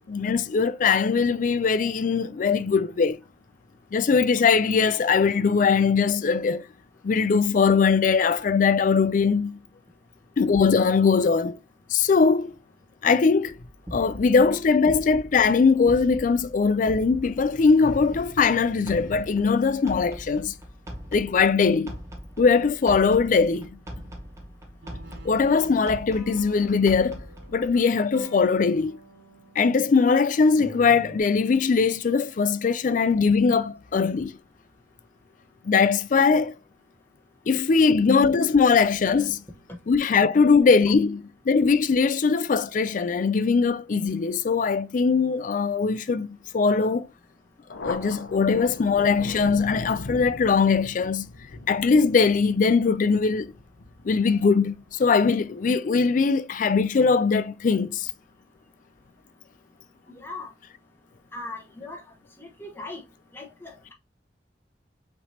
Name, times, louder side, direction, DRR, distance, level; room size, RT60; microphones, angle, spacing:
voice 1, 0.1-3.2 3.9-6.6 7.0-9.6 10.4-11.6 11.9-12.6 13.0-13.6 13.9-20.5 21.1-21.9 22.4-23.7 25.2-27.2 27.5-28.9 29.6-34.3 35.6-36.5 37.5-39.4 39.9-47.1 47.8-51.3 51.7-53.5 54.0-58.1, left 5 dB, 45° left, 0.4 m, -21 dB
sound 1, 13.5-27.8, equal, 15° right, 1.0 m, -41 dB
sound 2, 24.8-29.8 30.3-31.2, right 2 dB, 80° right, 1.4 m, -46 dB
Thunder, 47.7-54.8, left 2 dB, 80° left, 0.8 m, -39 dB
voice 2, 60.1-60.5 61.3-62.0 62.4-63.0 63.3-63.9, left 2 dB, 15° left, 1.0 m, -39 dB
5.7 x 3.3 x 2.7 m
head